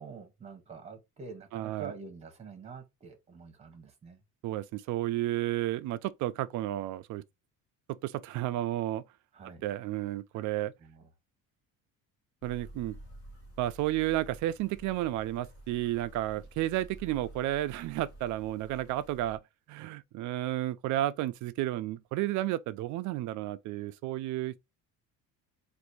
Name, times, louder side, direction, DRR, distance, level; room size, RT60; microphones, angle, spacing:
voice 1, 0.0-4.2 9.3-9.6 10.3-10.4 10.8-11.1, right 5 dB, 20° right, 1.0 m, -47 dB
voice 2, 1.5-1.9 4.4-7.2 7.9-9.0 9.6-10.7 12.4-13.0 13.6-19.4 19.7-24.6, right 14 dB, 60° right, 0.5 m, -32 dB
sound 1, 12.4-19.4, right 1 dB, 40° left, 1.7 m, -50 dB
4.0 x 2.6 x 4.6 m
cardioid pair, 180°, 34 cm